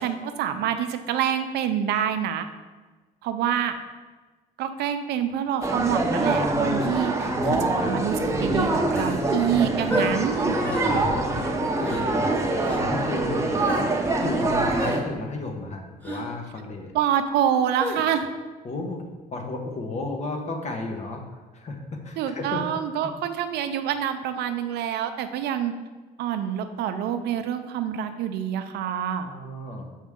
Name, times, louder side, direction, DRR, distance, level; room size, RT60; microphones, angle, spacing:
voice 1, 0.0-2.4 3.2-3.7 4.6-10.6 16.9-18.3 22.2-25.7 26.2-29.3, right 9 dB, 80° right, 8 dB, 0.6 m, -26 dB
sound 1, 5.6-15.0, right 2 dB, 15° right, 0.8 m, -24 dB
voice 2, 7.2-8.0 10.5-13.5 14.2-16.9 18.6-19.0 19.3-21.2 21.5-22.6 29.2-29.9, left 2 dB, 40° left, 3 dB, 1.1 m, -34 dB
sound 2, 8.9-9.2 9.9-10.1 10.6-10.9 11.8-12.0 12.6-12.8 13.6-13.8 14.8-15.0 16.0-16.2 17.8-18.0, equal, 10° left, 1.4 m, -32 dB
6.3 x 5.0 x 3.7 m, 1.3 s
cardioid pair, 110°, 17 cm